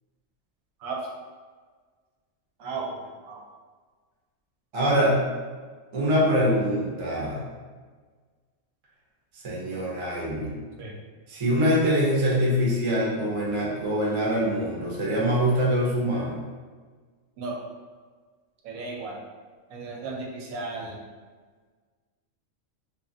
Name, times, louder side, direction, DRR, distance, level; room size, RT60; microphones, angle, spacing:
voice 1, 2.6-3.4 10.8-10.9 17.4-17.6 18.6-19.2 19.7-21.0, right 3 dB, 85° right, -1 dB, 1.0 m, -35 dB
voice 2, 4.7-5.2 5.9-7.4 9.3-10.5 11.3-16.4, equal, 40° right, -4 dB, 0.4 m, -24 dB
2.9 x 2.4 x 2.6 m, 1.5 s
omnidirectional pair, 1.4 m